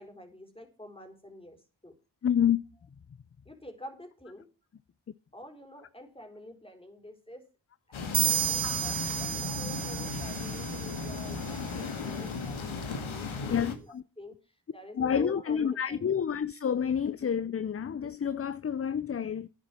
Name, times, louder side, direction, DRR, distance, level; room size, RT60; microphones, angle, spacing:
voice 1, 0.0-1.6 1.8-1.9 3.5-4.5 5.3-7.4 7.9-16.1, left 1 dB, 10° left, 4.2 m, -48 dB
voice 2, 2.2-2.6 8.6-8.8 13.5-14.0 15.0-19.5, left 8 dB, 30° left, 0.5 m, -29 dB
sound 1, 7.9-13.8, left 4 dB, 90° left, 1.9 m, -36 dB
sound 2, 8.1-11.7, right 12 dB, 70° right, 0.6 m, -32 dB
10.0 x 7.3 x 7.6 m
cardioid pair, 60°, 47 cm